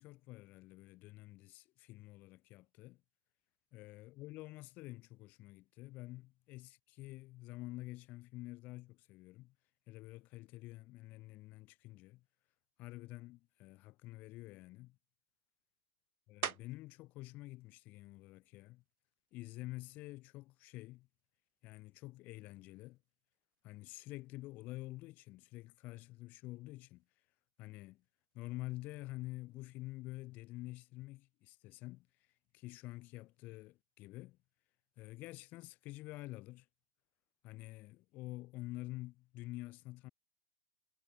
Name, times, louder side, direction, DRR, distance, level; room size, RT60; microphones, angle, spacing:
voice 1, 0.0-3.0 3.7-9.5 9.9-12.2 12.8-15.0 16.3-18.8 19.3-21.1 21.6-23.0 23.6-27.0 27.6-28.0 28.3-32.1 32.5-34.4 35.0-36.7 37.4-40.1, left 19 dB, 5° left, 0.3 m, -48 dB
sound 1, 16.4-17.0 17.6-22.0 22.5-27.7 28.0-33.6, right 7 dB, 70° right, 1.6 m, -52 dB
figure-of-eight pair, 110°, 44 cm